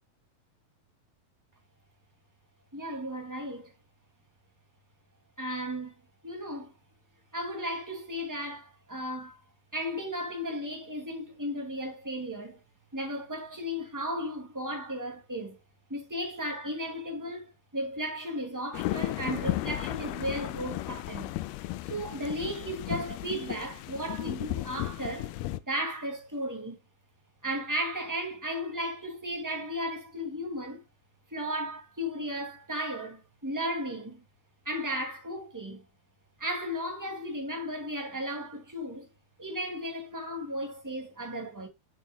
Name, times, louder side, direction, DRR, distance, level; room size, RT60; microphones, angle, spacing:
voice 1, 2.7-3.7 5.4-5.9 6.2-6.7 7.3-9.4 9.7-12.6 12.9-15.6 15.9-21.3 21.9-25.3 25.7-26.8 27.4-30.8 31.3-34.2 34.6-35.8 36.4-39.1 39.4-41.7, equal, 10° right, 1.3 m, -35 dB
sound 1, 18.7-25.6, left 16 dB, 90° left, 2.6 m, -34 dB
8.2 x 7.4 x 2.2 m
omnidirectional pair, 4.4 m